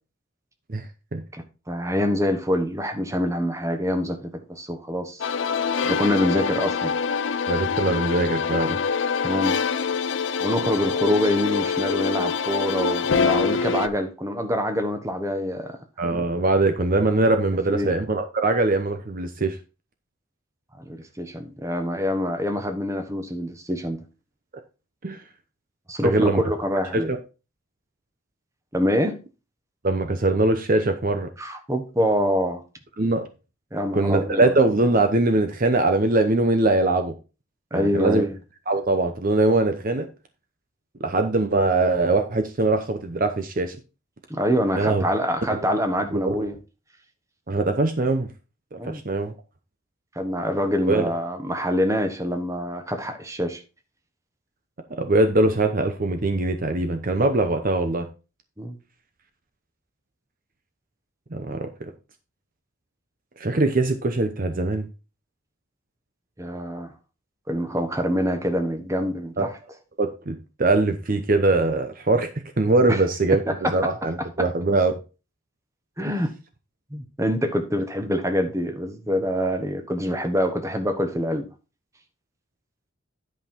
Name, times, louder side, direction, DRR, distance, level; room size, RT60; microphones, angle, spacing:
voice 1, 1.3-5.3 5.8-6.9 9.2-9.6 10.4-15.8 17.7-17.9 20.9-24.0 25.9-27.1 28.7-29.2 31.4-32.6 33.7-34.5 37.7-38.3 44.3-46.5 48.8-49.0 50.1-53.6 58.6-58.8 66.4-66.9 67.5-69.5 72.9-73.0 73.6-73.9 76.0-76.3 76.9-81.4, equal, 15° right, 1.1 m, -25 dB
sound 1, 5.2-13.9, left 6 dB, 60° left, 0.5 m, -25 dB
voice 2, 7.5-8.8 16.0-19.6 25.0-25.2 26.0-26.4 26.9-27.2 29.8-31.3 33.0-33.2 33.9-37.1 37.7-38.3 38.7-40.1 41.0-43.8 44.8-45.1 46.1-46.4 47.5-48.3 48.7-49.3 50.9-51.1 54.9-58.1 61.3-61.9 63.4-64.9 69.4-69.5 70.0-72.3 72.6-73.4 73.7-75.0, right 2 dB, 40° right, 0.7 m, -22 dB
10.5 x 5.5 x 4.4 m
head